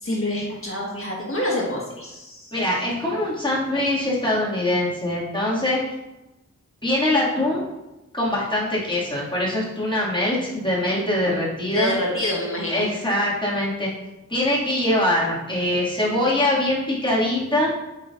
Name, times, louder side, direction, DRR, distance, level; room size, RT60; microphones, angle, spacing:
voice 1, 0.0-2.5 11.7-12.9, left 1 dB, 45° left, -3 dB, 1.5 m, -27 dB
voice 2, 2.5-5.8 6.8-7.6 8.1-11.9 12.7-13.9 14.3-17.7, left 1 dB, 15° left, -6 dB, 2.3 m, -23 dB
8.6 x 4.7 x 2.6 m, 0.99 s
wide cardioid pair, 75°, 30 cm